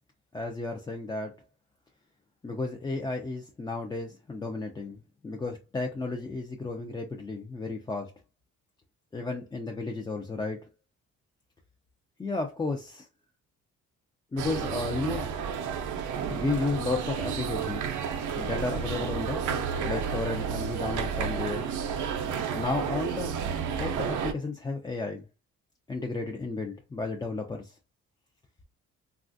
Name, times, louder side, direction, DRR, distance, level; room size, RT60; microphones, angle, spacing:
voice 1, 0.3-1.3 2.4-8.1 9.1-10.7 12.2-13.1 14.3-15.3 16.3-17.9 18.4-19.5 19.8-21.7 22.5-23.3 23.8-25.2 25.9-27.7, left 3 dB, 15° left, 0.4 m, -33 dB
sound 1, 14.4-24.3, right 7 dB, 75° right, 0.6 m, -31 dB
3.1 x 2.4 x 2.5 m
cardioid pair, 90°, 30 cm